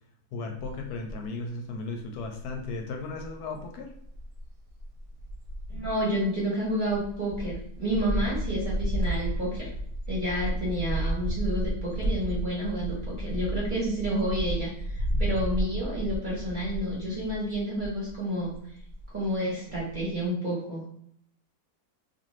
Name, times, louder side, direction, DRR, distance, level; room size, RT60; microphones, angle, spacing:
voice 1, 0.3-3.9, left 3 dB, 80° left, 2 dB, 1.1 m, -36 dB
sound 1, 0.6-1.3 1.7-1.8 2.2-18.2 18.4-19.4 19.7-20.0, equal, 70° right, 1.0 m, -33 dB
voice 2, 5.7-9.7 10.1-18.5 19.1-20.8, right 1 dB, 35° right, -6 dB, 1.0 m, -30 dB
2.6 x 2.5 x 3.1 m, 0.69 s
omnidirectional pair, 1.7 m